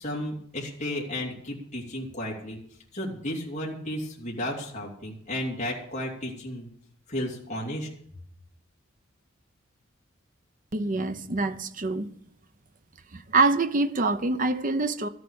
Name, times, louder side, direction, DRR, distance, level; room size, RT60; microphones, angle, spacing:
voice 1, 0.0-2.6 2.9-6.7 7.1-7.9, left 1 dB, 35° left, 3.0 m, -33 dB
voice 2, 10.7-12.1 13.1-15.1, right 3 dB, 40° right, 0.8 m, -25 dB
13.5 x 7.9 x 8.8 m
head